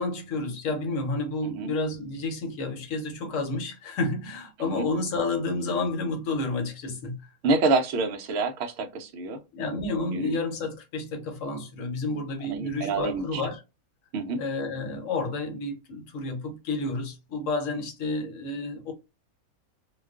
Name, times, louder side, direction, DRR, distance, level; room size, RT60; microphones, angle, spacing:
voice 1, 0.0-7.2 9.5-13.6 14.4-18.9, left 3 dB, 65° left, 1.0 m, -30 dB
voice 2, 7.4-9.4 10.1-10.3 12.4-13.4 14.1-14.4, right 3 dB, 65° right, 0.7 m, -27 dB
2.4 x 2.2 x 2.3 m
omnidirectional pair, 1.5 m